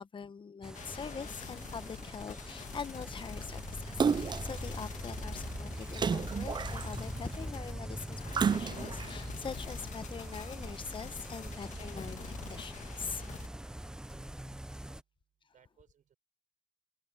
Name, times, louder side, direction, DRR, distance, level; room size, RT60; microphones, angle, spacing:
voice 1, 0.0-13.2, left 6 dB, 30° left, 1.2 m, -43 dB
sound 1, 0.6-15.0, right 1 dB, 5° right, 0.9 m, -42 dB
sound 2, 0.7-13.5, left 8 dB, 45° left, 2.1 m, -46 dB
Splash splatter, 4.0-4.6 5.9-7.2 8.3-9.1 9.7-9.8, right 6 dB, 25° right, 0.6 m, -31 dB
voice 2, 15.5-16.2, right 8 dB, 50° right, 6.9 m, -64 dB
cardioid pair, 110°, 17 cm